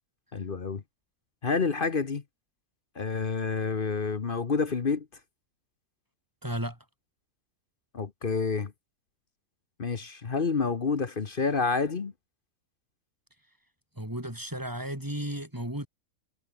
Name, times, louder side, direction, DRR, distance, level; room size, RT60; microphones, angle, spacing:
voice 1, 0.3-0.8 1.4-2.2 2.9-5.1 7.9-8.7 9.8-12.1, left 4 dB, 40° left, 1.1 m, -28 dB
voice 2, 6.4-6.8 14.0-15.9, right 1 dB, 10° right, 5.6 m, -34 dB
omnidirectional pair, 1.6 m